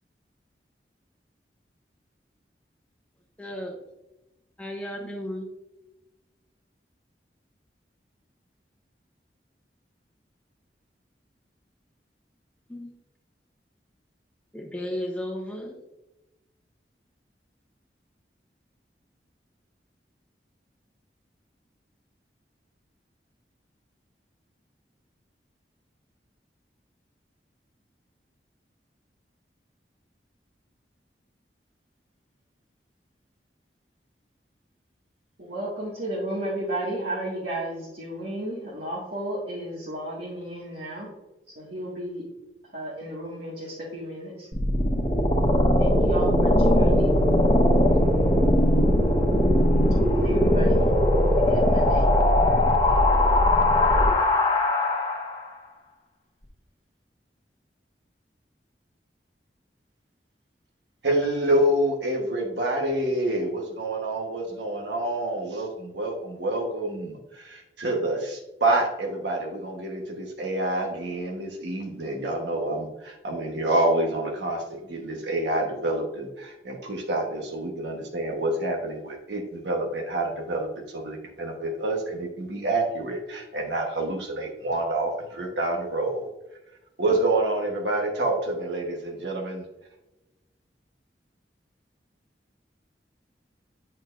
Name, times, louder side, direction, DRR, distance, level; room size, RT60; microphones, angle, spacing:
voice 1, 3.4-3.8 4.6-5.5 12.7-12.9 14.5-15.8, left 1 dB, 5° left, 0 dB, 0.9 m, -34 dB
voice 2, 35.4-41.1 41.6-42.2 42.7-44.5 45.8-47.2 50.0-50.9 51.3-52.0, right 1 dB, 70° right, -7 dB, 1.8 m, -33 dB
sound 1, 44.5-55.5, left 1 dB, 25° left, 1.1 m, -20 dB
voice 3, 61.0-74.6 74.9-86.3 87.0-89.6, right 1 dB, 90° right, 1 dB, 1.2 m, -27 dB
8.8 x 6.5 x 2.5 m, 1.0 s
head